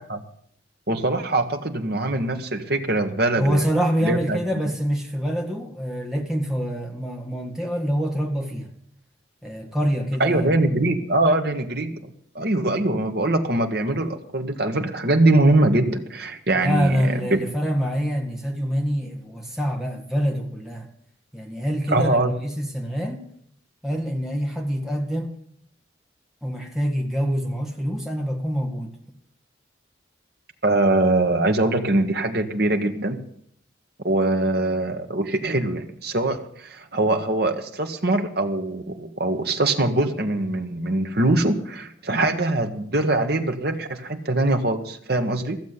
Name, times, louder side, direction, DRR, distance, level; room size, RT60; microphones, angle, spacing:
voice 1, 0.9-3.6 4.0-4.4 10.2-12.0 12.3-17.4 21.9-22.3 30.6-33.2 34.0-45.6, right 2 dB, 55° right, 1.4 m, -22 dB
voice 2, 3.4-8.7 9.4-10.5 16.6-20.9 21.3-23.2 23.8-25.3 26.4-28.9, equal, ahead, 1.8 m, -25 dB
15.0 x 7.3 x 9.6 m
head